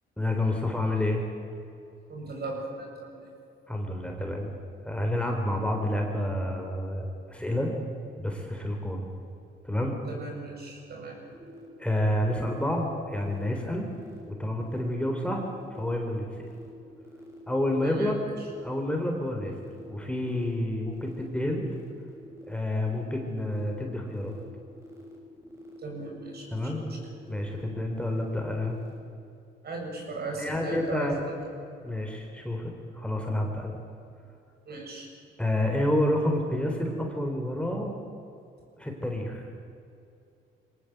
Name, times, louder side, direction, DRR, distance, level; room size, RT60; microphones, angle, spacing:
voice 1, 0.2-1.2 3.7-4.5 4.8-7.7 8.2-9.0 9.6-10.0 11.8-13.9 14.3-15.4 15.7-16.5 17.5-18.2 18.6-19.5 19.8-21.6 22.5-24.3 26.5-26.8 27.3-28.8 30.4-31.3 31.8-33.7 35.4-37.9 38.8-39.5, left 1 dB, 5° left, 2 dB, 3.7 m, -29 dB
voice 2, 2.1-3.3 10.1-11.2 17.8-18.1 25.8-26.9 29.6-31.3 34.7-35.1, right 2 dB, 55° right, 0 dB, 7.4 m, -37 dB
sound 1, 11.3-29.0, left 1 dB, 15° right, 6.9 m, -47 dB
23.0 x 18.5 x 8.0 m, 2.6 s
cardioid pair, 90°, 20 cm